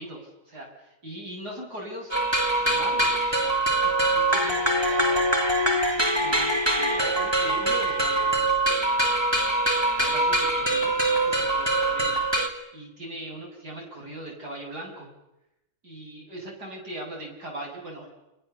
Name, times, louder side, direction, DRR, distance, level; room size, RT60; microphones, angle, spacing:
voice 1, 0.0-2.1 2.6-5.3 5.9-9.0 9.9-12.2 12.7-15.1 15.8-18.1, right 1 dB, 55° right, -1 dB, 7.7 m, -40 dB
sound 1, 2.1-12.5, right 1 dB, 15° right, 2.5 m, -23 dB
29.5 x 22.5 x 7.0 m, 0.92 s
omnidirectional pair, 2.1 m